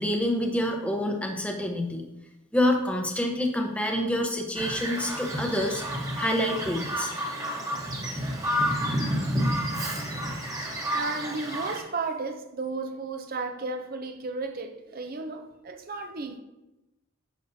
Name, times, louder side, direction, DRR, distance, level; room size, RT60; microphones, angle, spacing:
voice 1, 0.0-2.0 2.5-5.8 6.2-7.1, left 1 dB, 5° left, 0.8 m, -27 dB
Bird vocalization bird call bird song, 4.5-11.8, equal, 15° right, 1.2 m, -30 dB
voice 2, 10.9-16.4, right 3 dB, 40° right, 0.5 m, -33 dB
10.5 x 6.4 x 2.7 m
head